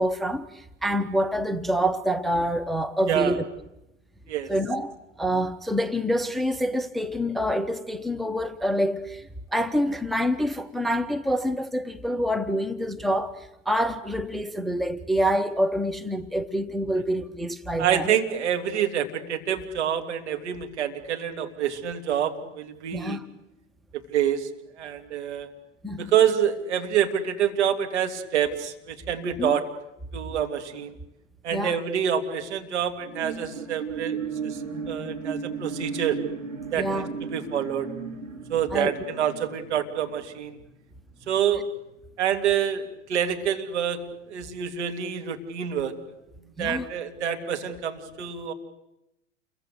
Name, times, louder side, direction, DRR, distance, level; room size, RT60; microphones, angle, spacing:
voice 1, 0.0-3.4 4.5-18.1 22.9-23.2 25.8-26.1 29.4-29.5 31.5-31.8 36.8-37.1 38.7-38.9 46.6-46.8, equal, ahead, 0.9 m, -26 dB
voice 2, 3.1-3.4 4.3-4.5 17.8-23.2 24.1-24.5 24.8-25.5 26.0-29.7 30.1-30.9 31.4-34.6 34.9-36.2 36.7-37.0 37.3-37.9 38.5-40.6 41.3-41.7 42.2-44.0 44.3-45.9 46.4-48.5, right 9 dB, 65° right, 3.1 m, -27 dB
sound 1, 32.9-40.7 41.2-41.3, right 5 dB, 85° right, 3.9 m, -35 dB
29.0 x 23.0 x 8.2 m
figure-of-eight pair, 95°, 37 cm